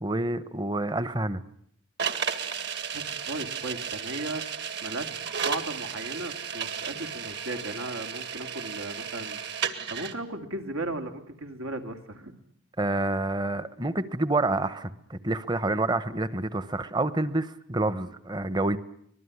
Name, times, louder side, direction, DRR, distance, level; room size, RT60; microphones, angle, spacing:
voice 1, 0.0-1.4 12.8-18.8, right 2 dB, 20° right, 14 dB, 1.0 m, -28 dB
sound 1, 2.0-10.1, right 7 dB, 55° right, 2.0 m, -34 dB
voice 2, 2.9-4.4 4.8-9.4 9.9-12.3, right 2 dB, 80° right, 6 dB, 2.7 m, -36 dB
24.5 x 20.5 x 9.7 m, 0.70 s
head